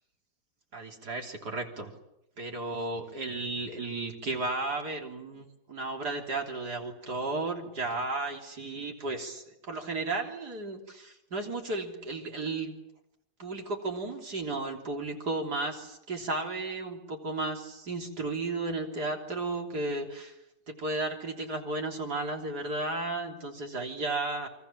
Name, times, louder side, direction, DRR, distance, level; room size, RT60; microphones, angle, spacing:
voice 1, 0.7-1.9 2.4-12.7 13.4-20.4 20.7-24.5, right 2 dB, 75° right, 3 dB, 4.0 m, -34 dB
29.0 x 23.5 x 7.4 m, 0.87 s
omnidirectional pair, 1.7 m